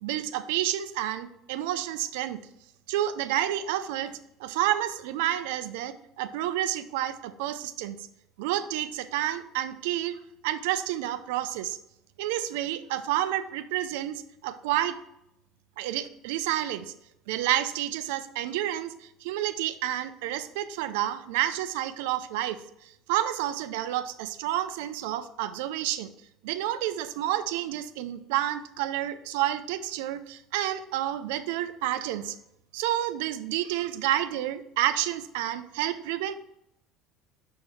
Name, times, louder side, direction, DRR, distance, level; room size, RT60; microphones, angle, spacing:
voice 1, 0.0-2.4 2.9-8.0 8.4-11.8 12.2-15.0 15.8-16.9 17.3-18.9 19.2-22.6 23.1-26.1 26.4-32.3 32.7-36.3, right 13 dB, 85° right, 11 dB, 0.4 m, -29 dB
5.3 x 4.6 x 4.7 m, 0.80 s
supercardioid pair, 105°, 0 cm